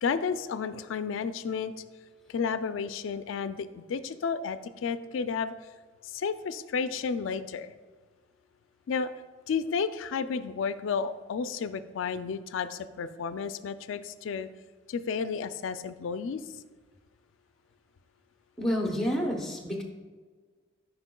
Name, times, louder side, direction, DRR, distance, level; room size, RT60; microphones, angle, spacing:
voice 1, 0.0-1.7 2.3-5.5 6.0-7.7 8.9-9.1 9.5-14.5 14.9-16.4, left 5 dB, 80° left, 12 dB, 0.3 m, -32 dB
voice 2, 18.6-19.8, equal, ahead, 1 dB, 0.8 m, -29 dB
8.0 x 5.3 x 2.2 m, 1.4 s
head